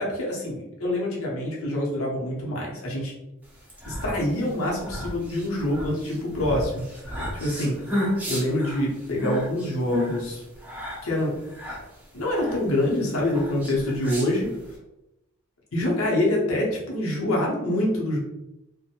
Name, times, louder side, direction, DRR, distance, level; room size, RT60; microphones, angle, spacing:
voice 1, 0.0-3.2 3.9-7.0 7.3-7.7 8.2-10.4 11.0-11.3 12.1-14.5 15.7-18.2, left 1 dB, 80° left, -3 dB, 0.9 m, -26 dB
sound 1, 3.6-14.8, equal, 10° right, 0.5 m, -33 dB
2.6 x 2.1 x 2.8 m, 0.90 s
head